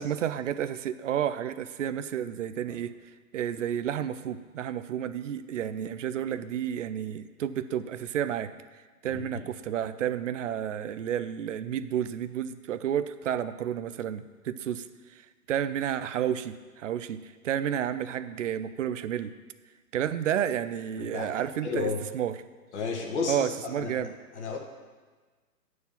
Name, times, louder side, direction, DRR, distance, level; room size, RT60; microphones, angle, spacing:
voice 1, 0.0-2.9 3.3-8.5 9.0-19.3 19.9-22.4 23.3-24.1, right 9 dB, 55° right, 12 dB, 0.5 m, -31 dB
voice 2, 9.0-9.4 21.0-21.3 21.6-22.0 22.7-24.6, left 4 dB, 45° left, 1 dB, 1.6 m, -33 dB
9.5 x 4.7 x 6.9 m, 1.4 s
hypercardioid pair, 155°, 47 cm